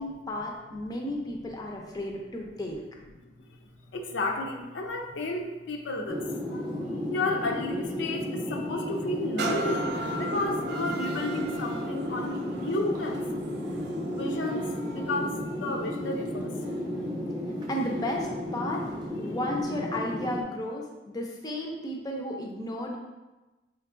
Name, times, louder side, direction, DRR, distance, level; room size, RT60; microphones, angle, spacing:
voice 1, 0.0-2.8 17.7-18.8 19.2-23.0, left 1 dB, 20° left, 0 dB, 0.5 m, -33 dB
voice 2, 1.3-1.9 3.2-6.7 7.1-13.4 14.1-16.5, left 2 dB, 80° left, 3 dB, 0.5 m, -33 dB
sound 1, 6.1-20.4, left 1 dB, 25° right, 0.7 m, -33 dB
sound 2, 9.4-17.0 17.6-17.7, right 3 dB, 60° right, 0.3 m, -38 dB
4.6 x 3.0 x 2.4 m, 1.1 s
head